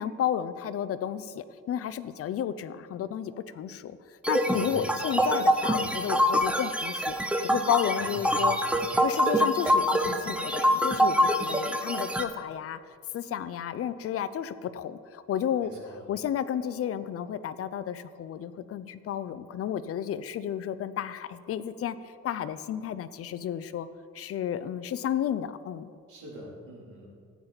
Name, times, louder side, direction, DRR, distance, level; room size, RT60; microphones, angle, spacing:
voice 1, 0.0-4.0 4.3-8.6 9.0-12.8 13.1-15.7 16.1-23.9 24.1-25.9, left 9 dB, 50° left, 14 dB, 0.5 m, -32 dB
sound 1, 4.2-12.2, equal, 5° right, 0.5 m, -25 dB
voice 2, 4.5-4.9 8.0-8.4 15.6-16.0 26.1-27.1, right 1 dB, 85° right, -3 dB, 3.3 m, -44 dB
14.5 x 9.3 x 4.0 m, 2.3 s
cardioid pair, 170°, 30 cm